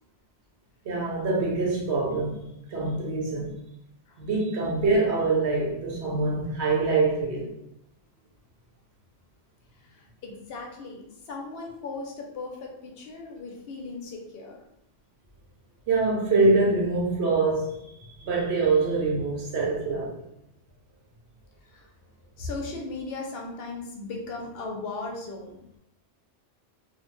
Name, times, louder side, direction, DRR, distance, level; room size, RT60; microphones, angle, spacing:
voice 1, 0.8-3.6 4.2-7.5 15.9-20.2, right 3 dB, 70° right, 1.0 m, -25 dB
voice 2, 9.7-14.6 21.6-21.9 22.4-25.8, left 3 dB, 65° left, 0.8 m, -38 dB
2.7 x 2.1 x 3.0 m
omnidirectional pair, 1.2 m